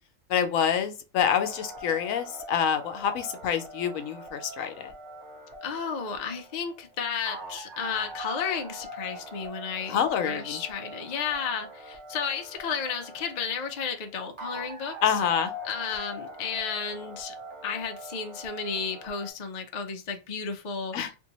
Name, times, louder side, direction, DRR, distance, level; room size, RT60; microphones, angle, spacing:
voice 1, 0.3-4.9 9.9-10.6 15.0-15.5 20.9-21.1, left 8 dB, 75° left, 1.0 m, -27 dB
sound 1, 1.2-19.3, equal, 60° right, 1.3 m, -42 dB
voice 2, 5.6-10.0 10.2-15.0 15.6-17.3 17.6-20.9, left 6 dB, 55° left, 0.4 m, -33 dB
3.4 x 2.7 x 2.9 m
omnidirectional pair, 1.4 m